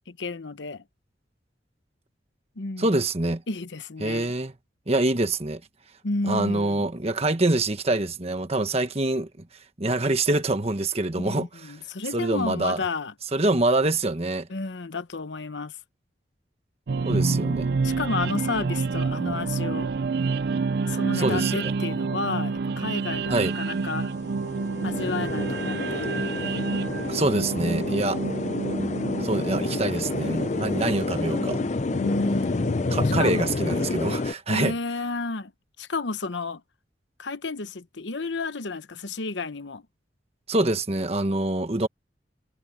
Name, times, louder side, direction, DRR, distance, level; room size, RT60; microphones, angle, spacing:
voice 1, 0.1-0.8 2.6-3.0 3.5-4.3 6.0-6.9 11.2-13.1 14.5-15.8 17.1-19.9 20.9-24.1 24.8-26.1 28.4-28.8 32.0-32.9 33.2-33.5 34.5-35.5 35.8-36.6 37.2-39.8, left 3 dB, 75° left, 1.0 m, -31 dB
voice 2, 2.8-3.4 4.0-4.5 4.9-5.6 6.3-9.3 9.8-11.7 12.1-12.8 13.3-14.5 17.0-17.7 21.2-21.7 23.3-23.5 27.1-28.2 29.2-31.6 32.9-34.7 40.5-41.9, right 2 dB, 35° right, 1.3 m, -25 dB
sound 1, 16.9-34.0, right 4 dB, 60° right, 0.5 m, -29 dB
sound 2, 23.5-23.6 23.8-34.3, left 3 dB, 40° left, 0.5 m, -29 dB
head